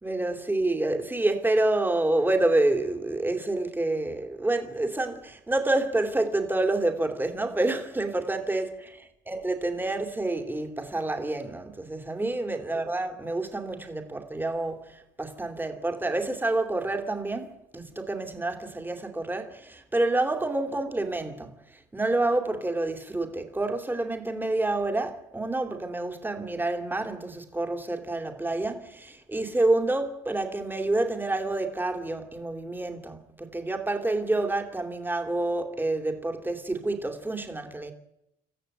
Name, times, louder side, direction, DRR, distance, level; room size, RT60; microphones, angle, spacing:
voice 1, 0.0-8.7 9.3-21.5 21.9-37.9, right 2 dB, 10° right, 2.8 m, -28 dB
27.0 x 14.5 x 8.0 m
cardioid pair, 110°, 17 cm